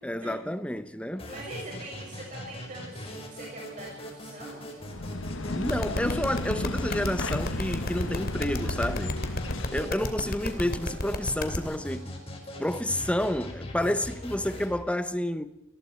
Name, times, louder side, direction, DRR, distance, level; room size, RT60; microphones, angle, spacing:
voice 1, 0.0-1.3 5.4-9.1 9.7-12.1 12.6-15.5, left 1 dB, 5° left, 0.9 m, -30 dB
sound 1, 1.2-14.8, left 1 dB, 30° left, 5.3 m, -41 dB
voice 2, 1.3-4.6 9.7-10.1, right 1 dB, 40° right, 6.5 m, -43 dB
sound 2, 4.8-9.9, left 2 dB, 75° left, 1.3 m, -34 dB
sound 3, 5.7-11.6, left 1 dB, 50° left, 2.7 m, -31 dB
27.5 x 20.5 x 4.6 m
head